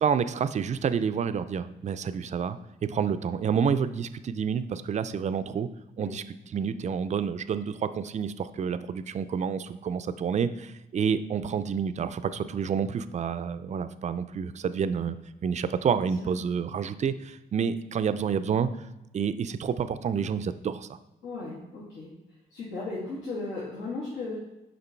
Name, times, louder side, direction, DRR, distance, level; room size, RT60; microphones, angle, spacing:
voice 1, 0.0-5.7 6.0-6.2 6.5-15.2 15.4-18.7 19.1-21.0, right 7 dB, 35° right, 12 dB, 0.4 m, -29 dB
voice 2, 15.9-16.3 21.2-22.1 22.5-24.4, left 3 dB, 80° left, -8 dB, 2.4 m, -36 dB
6.8 x 5.2 x 4.5 m, 0.96 s
cardioid pair, 90°, 20 cm